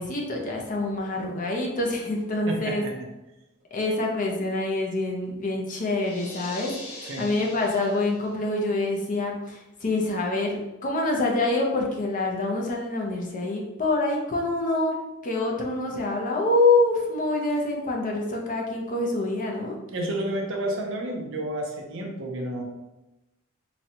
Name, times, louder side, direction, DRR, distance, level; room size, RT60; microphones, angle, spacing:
voice 1, 0.0-2.8 3.7-14.9 15.2-19.7, left 2 dB, 40° left, 0 dB, 0.5 m, -26 dB
voice 2, 2.5-2.9 7.0-7.3 19.9-22.6, right 1 dB, 60° right, 1 dB, 0.6 m, -30 dB
sound 1, 6.0-8.5, left 2 dB, 75° left, 0.9 m, -41 dB
4.0 x 2.2 x 2.8 m, 0.99 s
head